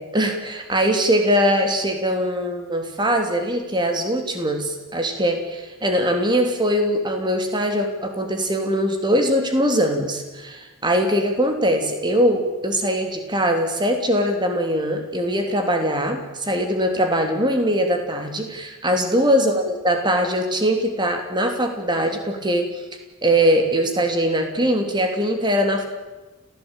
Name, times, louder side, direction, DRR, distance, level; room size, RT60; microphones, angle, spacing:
voice 1, 0.0-22.7 23.2-25.9, equal, 20° right, 5 dB, 3.2 m, -21 dB
29.5 x 16.0 x 9.1 m, 1.2 s
head